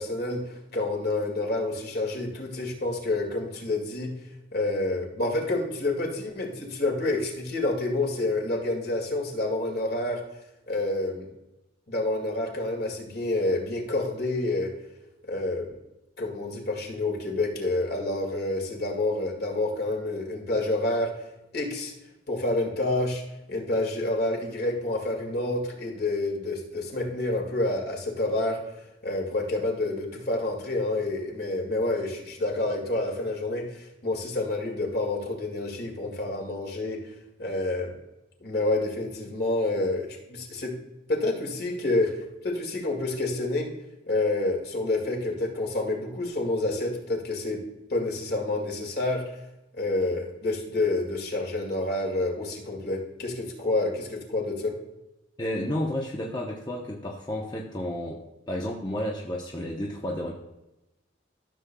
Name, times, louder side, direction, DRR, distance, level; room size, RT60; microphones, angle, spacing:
voice 1, 0.0-4.1 4.5-10.2 10.7-11.3 11.9-14.7 15.3-15.7 16.2-21.1 21.5-21.9 22.3-23.2 23.5-28.6 29.0-37.0 37.4-37.9 38.4-40.7 41.1-42.1 42.4-43.7 44.1-47.6 47.9-49.2 49.7-54.7, left 2 dB, 50° left, 1 dB, 2.0 m, -28 dB
voice 2, 55.4-58.2 58.5-60.3, left 1 dB, 20° left, -2 dB, 0.7 m, -31 dB
13.5 x 7.1 x 2.3 m, 0.97 s
head